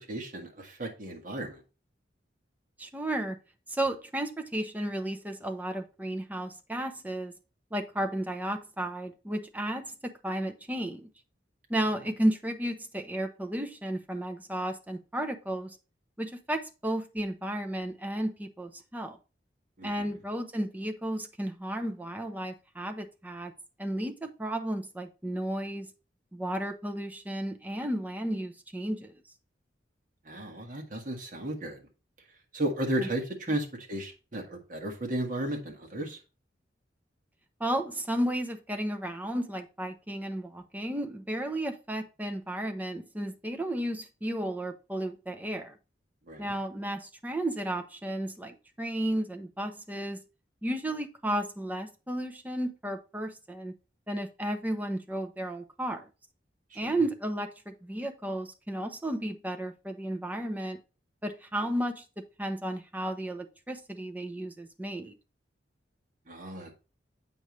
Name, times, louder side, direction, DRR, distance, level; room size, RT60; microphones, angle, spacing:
voice 1, 0.1-1.6 19.8-20.1 30.3-31.8 32.5-36.2 46.3-46.5 66.3-66.7, right 1 dB, 50° right, 1.7 m, -34 dB
voice 2, 2.8-3.4 3.7-7.3 7.7-11.1 11.7-15.7 16.2-19.2 19.8-23.5 23.8-25.9 26.3-29.1 33.0-33.1 37.6-45.7 46.4-50.2 50.6-53.7 54.1-56.1 56.7-60.8 61.2-62.0 62.4-65.2, right 1 dB, 10° right, 0.7 m, -33 dB
7.9 x 5.2 x 3.1 m
head